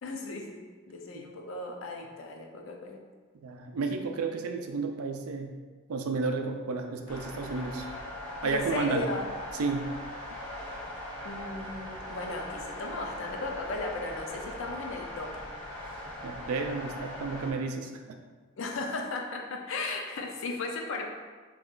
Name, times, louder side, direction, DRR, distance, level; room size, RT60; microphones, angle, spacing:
voice 1, 0.0-3.0 8.4-9.3 11.2-15.4 18.6-21.1, left 3 dB, 65° left, 2 dB, 0.4 m, -36 dB
voice 2, 3.4-5.5 5.9-7.9 8.4-9.0 9.5-9.9 16.2-18.2, right 4 dB, 85° right, 4 dB, 0.4 m, -32 dB
sound 1, 7.1-17.5, left 1 dB, 85° left, 1.0 m, -40 dB
3.0 x 2.4 x 3.6 m, 1.4 s
head